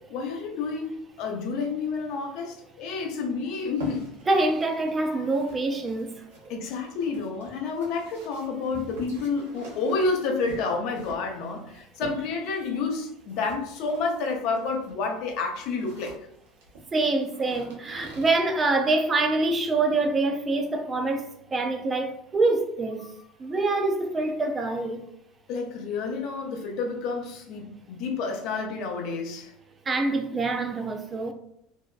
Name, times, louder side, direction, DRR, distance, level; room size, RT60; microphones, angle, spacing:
voice 1, 0.1-4.1 5.0-5.3 6.5-16.3 25.5-29.5, left 4 dB, 65° left, 0.6 m, -30 dB
sound 1, 3.7-18.3, right 2 dB, 85° right, 0.8 m, -47 dB
voice 2, 4.3-6.1 6.4-6.5 16.9-23.1 23.4-25.0 29.9-31.3, right 2 dB, 25° right, 0.4 m, -25 dB
2.7 x 2.1 x 2.3 m
hypercardioid pair, 80°, 0 cm